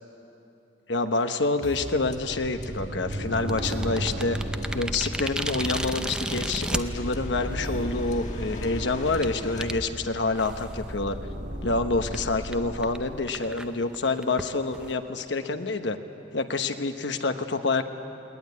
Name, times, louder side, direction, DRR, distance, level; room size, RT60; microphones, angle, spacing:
voice 1, 0.9-4.4 4.7-11.2 11.6-16.0 16.3-17.8, left 3 dB, 80° left, 7 dB, 1.1 m, -27 dB
sound 1, 1.6-10.5, left 1 dB, 40° left, 1.6 m, -41 dB
sound 2, 2.0-13.2, right 1 dB, 85° right, 2.3 m, -35 dB
sound 3, 3.3-6.8 7.6-7.7 8.3-8.5 9.2-9.3 9.6-9.7 10.4-10.8 11.1-11.2 11.6-11.7 12.1-12.2 12.5-12.6 12.8-13.0 13.3-14.9, right 1 dB, 5° right, 0.5 m, -33 dB
20.5 x 19.5 x 9.7 m, 2.8 s
head